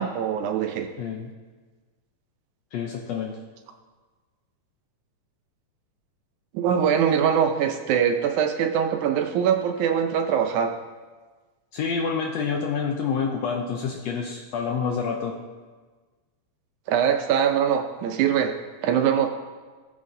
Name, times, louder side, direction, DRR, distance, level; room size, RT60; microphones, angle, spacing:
voice 1, 0.0-0.9 6.5-10.8 16.9-18.6 18.8-19.3, right 8 dB, 75° right, 5 dB, 2.0 m, -22 dB
voice 2, 1.0-1.3 2.7-3.4 11.7-15.4, left 5 dB, 75° left, 2 dB, 1.6 m, -28 dB
17.5 x 7.3 x 2.7 m, 1.4 s
omnidirectional pair, 3.7 m